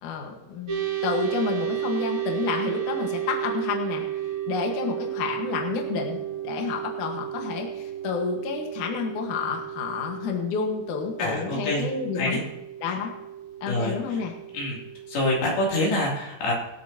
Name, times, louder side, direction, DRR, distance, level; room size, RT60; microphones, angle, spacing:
voice 1, 0.0-4.0 4.5-12.4 12.8-13.1 13.6-14.3, left 6 dB, 70° left, 1 dB, 1.9 m, -30 dB
sound 1, 0.7-15.4, right 12 dB, 55° right, 1.3 m, -33 dB
voice 2, 11.2-11.8 12.1-12.4 13.7-14.2 14.5-14.8 15.1-16.5, left 1 dB, 55° left, -3 dB, 4.5 m, -26 dB
25.5 x 8.5 x 2.9 m, 0.94 s
omnidirectional pair, 5.9 m